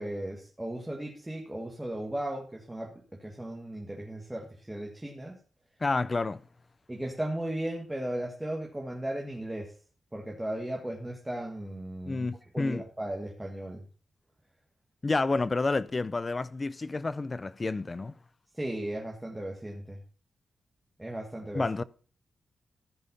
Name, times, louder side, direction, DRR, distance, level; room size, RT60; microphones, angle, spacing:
voice 1, 0.0-2.9 3.2-5.4 6.9-9.7 10.1-12.3 12.5-13.8 18.5-20.0 21.0-21.6, right 1 dB, 10° right, 1.6 m, -36 dB
voice 2, 5.8-6.4 12.1-12.8 15.0-18.1 21.5-21.8, left 3 dB, 25° left, 0.5 m, -29 dB
14.5 x 5.6 x 5.4 m
wide cardioid pair, 130°, 0 cm